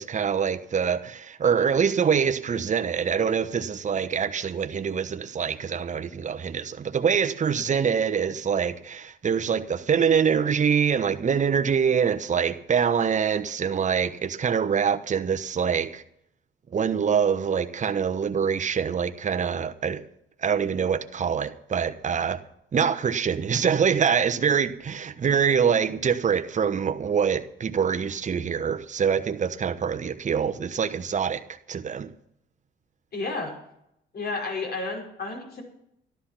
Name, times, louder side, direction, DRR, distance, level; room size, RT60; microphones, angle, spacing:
voice 1, 0.0-16.0 16.7-20.0 20.4-22.4 22.7-31.4 31.7-32.1, right 7 dB, 40° right, 1.0 m, -25 dB
voice 2, 33.1-33.5 34.1-35.6, left 3 dB, 55° left, 5.7 m, -31 dB
13.0 x 11.5 x 5.9 m
cardioid pair, 90°, 20 cm